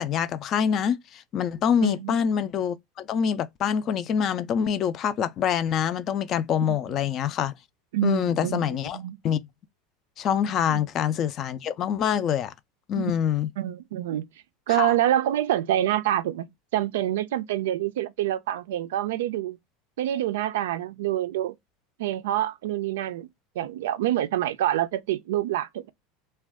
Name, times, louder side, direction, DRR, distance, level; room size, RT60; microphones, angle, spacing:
voice 1, 0.0-7.5 8.0-9.0 9.2-9.4 10.2-12.5 12.9-13.5 14.7-14.9, left 8 dB, 35° left, 0.3 m, -25 dB
voice 2, 1.8-2.1 6.7-6.8 7.9-9.2 10.7-10.8 13.0-13.1 13.6-14.3 14.7-19.6 20.0-21.5 22.0-23.3 23.6-25.9, right 13 dB, 90° right, 0.3 m, -26 dB
2.4 x 2.2 x 3.4 m
supercardioid pair, 145°, 0 cm